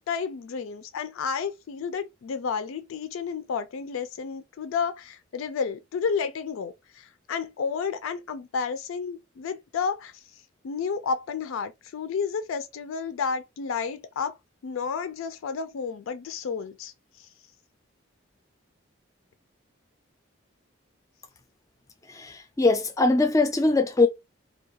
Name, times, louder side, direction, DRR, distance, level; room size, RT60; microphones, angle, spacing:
voice 1, 0.0-10.1 10.6-14.3 14.6-16.9, left 5 dB, 90° left, 0.4 m, -31 dB
voice 2, 22.1-24.1, left 3 dB, 15° left, 0.3 m, -21 dB
2.3 x 2.2 x 2.7 m
head